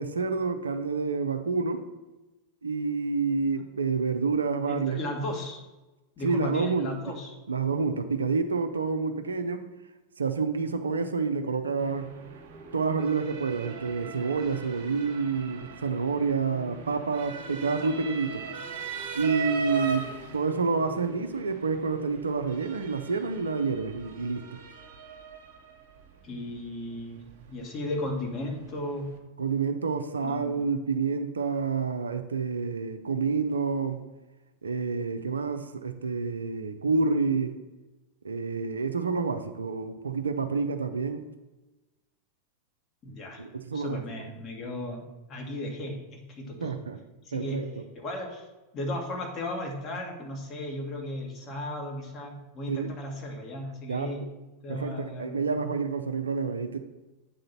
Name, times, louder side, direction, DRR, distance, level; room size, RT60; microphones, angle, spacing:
voice 1, 0.0-1.9 2.6-5.0 6.2-6.9 7.5-9.7 10.2-12.1 12.7-18.5 19.1-20.0 20.3-24.5 29.4-34.0 34.6-37.6 38.2-41.2 43.4-44.0 46.6-47.0 47.3-47.7 52.7-53.0 53.9-54.3 54.7-56.8, right 4 dB, 75° right, 8 dB, 0.5 m, -28 dB
voice 2, 4.7-5.6 6.2-7.3 19.7-19.9 26.2-27.2 27.5-29.0 30.2-30.7 43.0-43.4 43.7-45.0 45.3-46.8 47.2-47.7 47.9-48.5 48.7-54.2 54.6-55.5, left 1 dB, 30° left, 1 dB, 1.5 m, -35 dB
sound 1, 11.7-23.7, right 3 dB, 20° right, 1.1 m, -49 dB
Motor vehicle (road) / Siren, 11.8-29.2, right 5 dB, 55° right, 1.1 m, -40 dB
8.3 x 3.9 x 5.6 m, 1.1 s
figure-of-eight pair, 90°, 0 cm